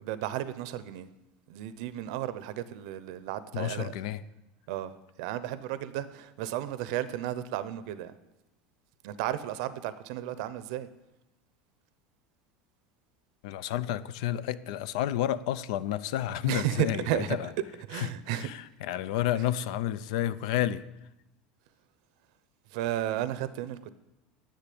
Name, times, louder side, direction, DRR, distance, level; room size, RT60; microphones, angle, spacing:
voice 1, 0.1-1.1 1.5-3.9 4.7-4.9 5.2-8.1 9.0-10.9 16.4-17.4 17.9-18.5 22.7-23.9, right 12 dB, 75° right, 0.6 m, -33 dB
voice 2, 3.5-4.2 13.4-17.5 17.9-20.8, left 12 dB, 80° left, 0.6 m, -31 dB
10.0 x 8.0 x 8.5 m
supercardioid pair, 140°, 4 cm